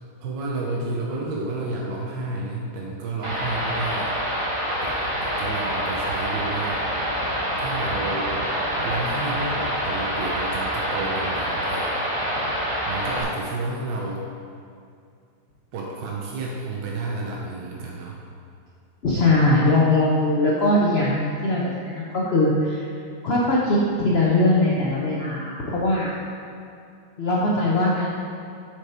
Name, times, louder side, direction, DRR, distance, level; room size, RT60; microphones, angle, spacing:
voice 1, 0.2-4.2 4.8-7.2 7.6-8.4 8.8-12.1 12.9-14.3 15.7-18.2, right 2 dB, 70° right, -2 dB, 1.4 m, -31 dB
sound 1, 3.2-13.2, equal, 20° right, 1.0 m, -26 dB
voice 2, 19.0-21.6 21.9-22.9 23.2-26.1 27.2-28.1, left 2 dB, 85° left, -4 dB, 0.5 m, -20 dB
6.5 x 5.1 x 4.3 m, 2.4 s
omnidirectional pair, 2.1 m